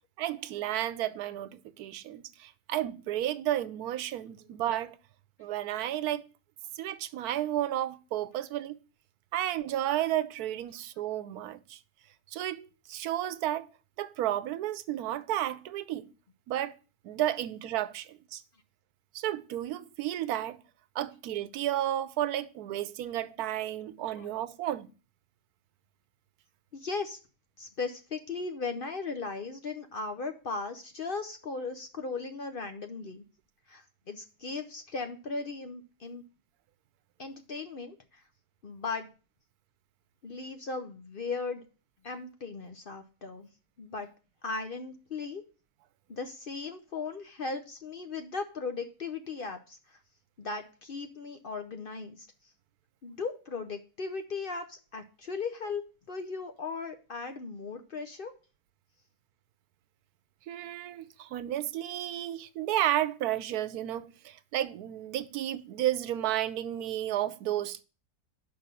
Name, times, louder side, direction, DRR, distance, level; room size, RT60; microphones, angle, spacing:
voice 1, 0.2-5.0 5.4-6.3 6.7-8.8 9.3-11.8 12.3-13.7 14.0-16.1 16.5-16.7 17.0-18.4 19.1-20.6 20.9-24.9 60.5-67.8, right 12 dB, 85° right, 1.1 m, -32 dB
voice 2, 26.7-27.2 27.6-33.2 33.7-36.2 37.2-38.2 38.6-39.1 40.2-41.6 42.0-43.5 43.8-44.1 44.4-45.4 46.1-50.0 50.4-52.3 53.0-55.8 56.1-58.3, left 4 dB, 50° left, 0.7 m, -37 dB
5.8 x 5.3 x 6.8 m
omnidirectional pair, 1.6 m